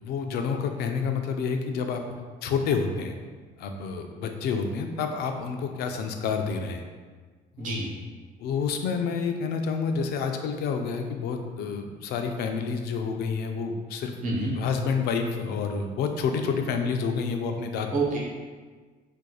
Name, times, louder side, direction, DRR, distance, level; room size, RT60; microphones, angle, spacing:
voice 1, 0.0-2.0 2.4-3.2 3.6-6.8 7.6-7.8 8.4-14.1 14.6-17.9, left 5 dB, 70° left, 5 dB, 0.4 m, -29 dB
voice 2, 7.6-7.9 14.2-14.5 17.9-18.2, right 2 dB, 50° right, -3 dB, 1.0 m, -27 dB
4.4 x 2.5 x 2.3 m, 1.5 s
cardioid pair, 110°, 17 cm